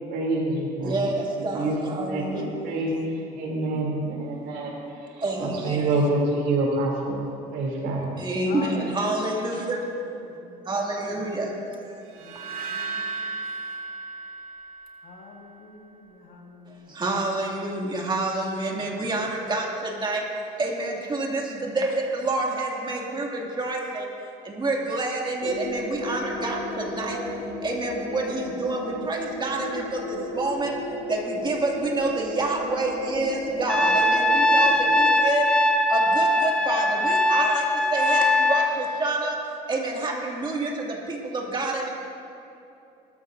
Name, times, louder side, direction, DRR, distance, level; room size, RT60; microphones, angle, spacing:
voice 1, 0.0-1.1 1.5-4.8 5.0-8.2, right 2 dB, 85° right, -2 dB, 3.0 m, -27 dB
voice 2, 0.8-2.7 4.3-4.4 5.2-5.9 8.2-9.8 10.6-12.0 16.7-20.3 20.6-24.1 24.4-27.3 27.6-30.8 31.1-35.5 35.9-39.4 39.7-41.9, right 2 dB, 25° right, -1 dB, 2.4 m, -28 dB
voice 3, 8.5-10.7 12.2-13.4 15.0-17.0 19.0-19.2 34.7-34.9, left 4 dB, 80° left, 1 dB, 1.9 m, -45 dB
sound 1, 12.1-15.3, right 4 dB, 60° right, 2.1 m, -35 dB
sound 2, 25.4-35.1, left 1 dB, 60° left, 2.9 m, -34 dB
Trumpet, 33.7-38.8, left 1 dB, 5° left, 0.8 m, -21 dB
20.0 x 13.0 x 2.7 m, 2.7 s
cardioid pair, 110°, 17 cm